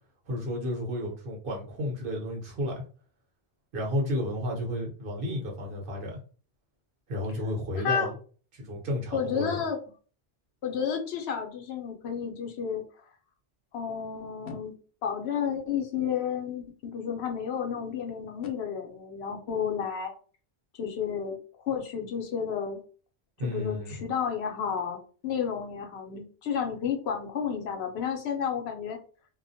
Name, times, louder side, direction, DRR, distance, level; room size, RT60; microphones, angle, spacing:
voice 1, 0.3-2.8 3.7-6.2 7.1-8.1 8.5-9.6 23.4-24.0, left 1 dB, 55° right, -1 dB, 1.0 m, -32 dB
voice 2, 7.7-8.1 9.1-9.8 10.6-12.8 13.7-14.7 15.0-20.1 20.7-22.8 23.4-29.0, left 7 dB, 75° left, 3 dB, 0.9 m, -31 dB
2.4 x 2.1 x 2.6 m, 0.40 s
omnidirectional pair, 1.1 m